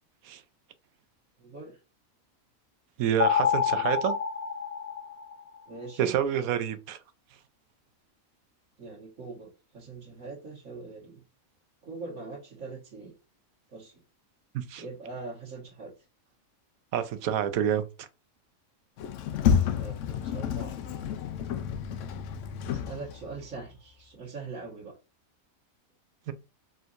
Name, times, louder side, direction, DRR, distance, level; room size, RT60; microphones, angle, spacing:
voice 1, 1.4-1.8 3.7-3.9 5.7-6.1 8.8-11.2 11.8-13.1 13.7-14.0 14.8-15.9 19.5-20.8 22.7-25.0, right 3 dB, 65° right, 1.7 m, -42 dB
voice 2, 3.0-4.1 6.0-7.0 14.5-14.8 16.9-18.1 26.3-26.4, right 9 dB, 85° right, 1.1 m, -28 dB
sound 1, 3.2-5.6, left 7 dB, 55° left, 0.4 m, -27 dB
Sliding door, 19.0-23.4, left 7 dB, 70° left, 0.9 m, -29 dB
4.3 x 3.8 x 2.5 m
omnidirectional pair, 1.4 m